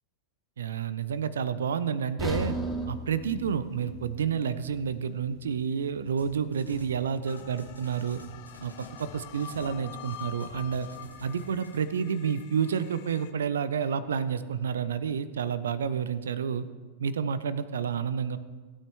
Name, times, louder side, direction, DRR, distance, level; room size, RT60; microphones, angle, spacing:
voice 1, 0.6-2.5 2.9-8.2 8.6-8.7 9.0-10.9 11.2-16.7 17.0-18.4, right 7 dB, 65° right, 14 dB, 0.5 m, -30 dB
sound 1, 2.2-6.2 6.6-6.8 7.3-7.4, equal, ahead, 2.0 m, -37 dB
sound 2, 6.2-7.0 7.2-9.8 10.0-11.8, left 1 dB, 90° right, 1.5 m, -47 dB
sound 3, 7.3-13.3, left 11 dB, 50° left, 0.8 m, -46 dB
18.0 x 8.9 x 3.3 m, 1.4 s
figure-of-eight pair, 90°, 0 cm